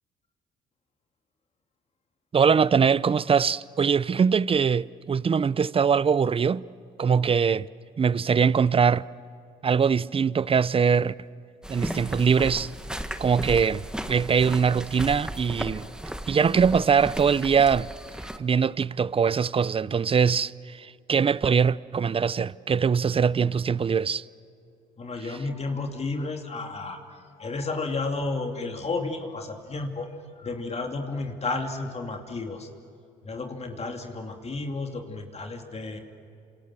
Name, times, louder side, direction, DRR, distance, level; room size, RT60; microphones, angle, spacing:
voice 1, 2.3-6.6 7.0-7.7 8.0-9.1 9.6-11.1 11.7-12.7 13.2-15.9 16.3-17.9 18.4-24.2, right 6 dB, 30° right, 0.6 m, -22 dB
sound 1, 11.6-18.4, right 1 dB, 5° right, 1.6 m, -35 dB
voice 2, 25.0-30.1 30.4-32.7 33.2-36.0, left 3 dB, 35° left, 2.9 m, -32 dB
28.5 x 27.0 x 7.7 m
supercardioid pair, 75°, 19 cm